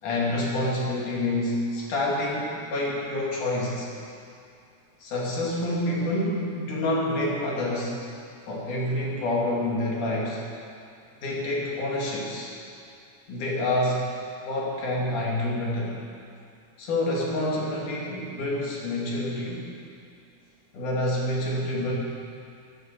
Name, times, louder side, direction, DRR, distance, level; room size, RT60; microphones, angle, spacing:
voice 1, 0.0-3.9 5.0-8.0 8.5-10.4 11.2-12.5 13.3-14.1 14.4-16.0 16.8-19.7 20.7-21.9, left 1 dB, 85° left, -3 dB, 4.0 m, -27 dB
12.5 x 12.0 x 7.6 m, 2.5 s
omnidirectional pair, 3.4 m